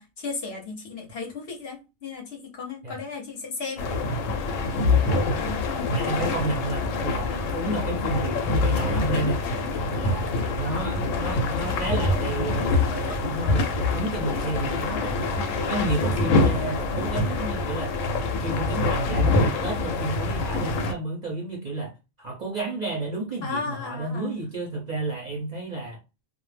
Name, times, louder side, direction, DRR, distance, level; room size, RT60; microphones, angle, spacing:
voice 1, 0.0-3.9 5.7-5.9 9.9-10.1 23.4-24.4, left 4 dB, 55° left, 0.8 m, -35 dB
sound 1, 3.8-20.9, left 3 dB, 80° left, 1.0 m, -25 dB
voice 2, 5.9-9.4 9.9-18.0 18.2-21.9 22.2-26.0, right 2 dB, 45° right, 0.6 m, -31 dB
2.3 x 2.1 x 3.2 m
omnidirectional pair, 1.3 m